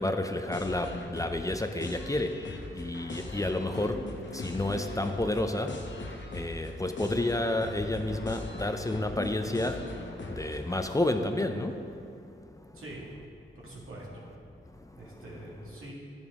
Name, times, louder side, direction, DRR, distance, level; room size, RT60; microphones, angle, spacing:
voice 1, 0.0-12.8 14.7-15.2, left 1 dB, 15° left, 6 dB, 0.5 m, -31 dB
sound 1, 0.5-10.8, left 2 dB, 60° left, 1.0 m, -40 dB
voice 2, 13.6-14.3 15.0-15.9, right 1 dB, 80° right, -5 dB, 2.0 m, -44 dB
10.5 x 7.1 x 3.6 m, 2.5 s
cardioid pair, 60°, 21 cm